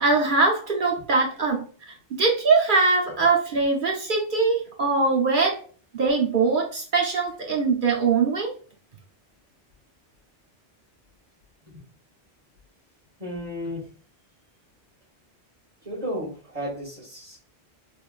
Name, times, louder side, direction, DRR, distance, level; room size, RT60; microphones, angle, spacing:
voice 1, 0.0-1.7 2.2-5.6 5.9-8.5, right 4 dB, 55° right, 0 dB, 0.7 m, -22 dB
voice 2, 13.2-13.9 15.8-17.4, equal, 35° right, -7 dB, 1.4 m, -33 dB
3.5 x 3.3 x 2.4 m, 0.40 s
omnidirectional pair, 1.2 m